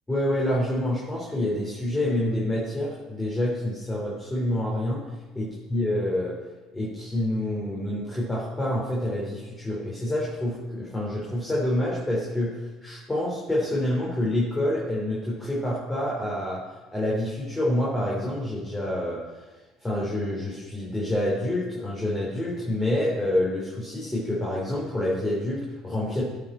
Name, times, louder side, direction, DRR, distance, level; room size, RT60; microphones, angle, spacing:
voice 1, 0.1-5.1 5.3-6.4 6.7-16.6 16.9-19.4 19.8-26.2, left 1 dB, 15° left, -5 dB, 3.2 m, -27 dB
15.0 x 5.2 x 4.3 m, 1.2 s
hypercardioid pair, 60°, 0 cm